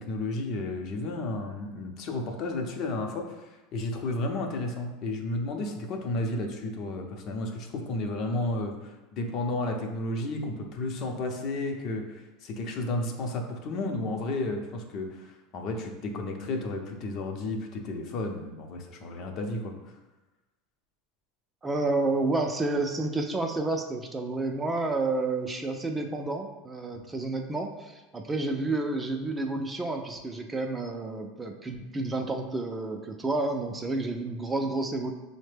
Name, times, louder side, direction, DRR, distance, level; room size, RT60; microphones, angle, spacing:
voice 1, 0.0-3.4 3.7-19.7, left 2 dB, 50° left, 3 dB, 0.7 m, -32 dB
voice 2, 21.6-35.1, right 2 dB, 15° right, 4 dB, 0.5 m, -30 dB
5.4 x 2.1 x 3.3 m, 1.1 s
hypercardioid pair, 100°, 0 cm